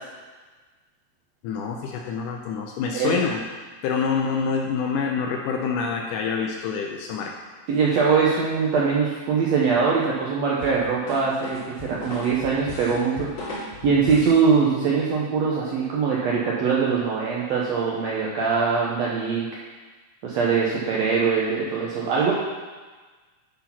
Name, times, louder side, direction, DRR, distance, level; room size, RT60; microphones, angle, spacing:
voice 1, 1.4-3.4 3.8-7.3, left 5 dB, 80° left, 1 dB, 1.9 m, -26 dB
voice 2, 7.7-13.4 13.8-19.5 20.2-22.3, right 5 dB, 80° right, -4 dB, 1.5 m, -22 dB
sound 1, 10.6-14.4, left 2 dB, 45° left, 3.2 m, -36 dB
10.0 x 4.1 x 5.7 m, 1.4 s
omnidirectional pair, 4.2 m